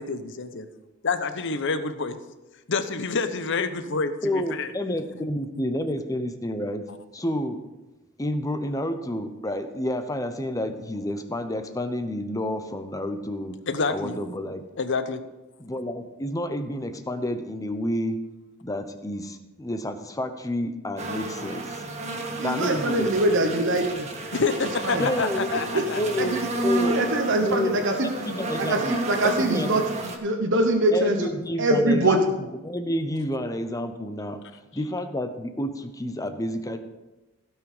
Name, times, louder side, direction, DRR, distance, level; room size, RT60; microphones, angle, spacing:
voice 1, 0.0-0.6 1.0-2.2 2.7-4.7 6.9-7.0 13.7-14.1 14.8-15.2 24.3-26.0, left 4 dB, 60° left, 10 dB, 0.9 m, -27 dB
voice 2, 4.2-7.6 8.2-13.6 13.9-14.6 15.6-18.2 18.6-21.8 22.4-23.2 24.9-25.5 26.0-27.0 27.4-29.0 29.2-29.7 30.9-32.2 32.6-34.4 34.7-36.8, left 1 dB, 15° left, 8 dB, 0.8 m, -29 dB
sound 1, 21.0-30.2, right 2 dB, 30° right, 1.5 m, -31 dB
voice 3, 22.4-24.1 24.8-25.1 25.5-25.8 26.2-28.1 28.6-29.9 30.2-31.3 31.6-32.2, right 1 dB, 60° right, 3 dB, 1.0 m, -23 dB
16.5 x 6.2 x 5.0 m, 1.1 s
head